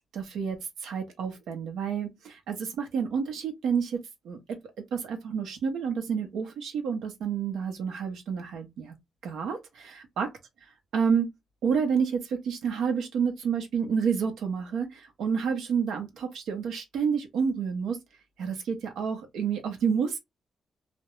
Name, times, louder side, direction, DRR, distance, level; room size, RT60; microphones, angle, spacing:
voice 1, 0.1-8.9 9.2-10.3 10.9-11.3 11.6-18.0 18.4-20.2, right 6 dB, 90° right, 0.7 m, -29 dB
2.4 x 2.1 x 2.9 m
cardioid pair, 135°, 0 cm